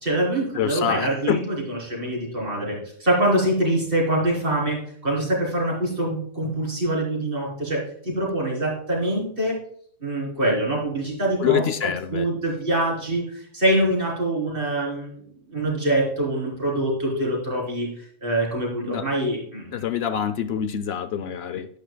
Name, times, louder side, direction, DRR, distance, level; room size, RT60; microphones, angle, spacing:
voice 1, 0.0-9.6 10.0-15.2 15.5-17.9 18.2-19.8, right 1 dB, 50° right, -4 dB, 4.1 m, -24 dB
voice 2, 0.5-1.4 11.4-12.3 18.9-19.1 19.7-21.7, left 9 dB, 70° left, 11 dB, 0.8 m, -25 dB
11.5 x 9.8 x 2.3 m, 0.63 s
omnidirectional pair, 1.2 m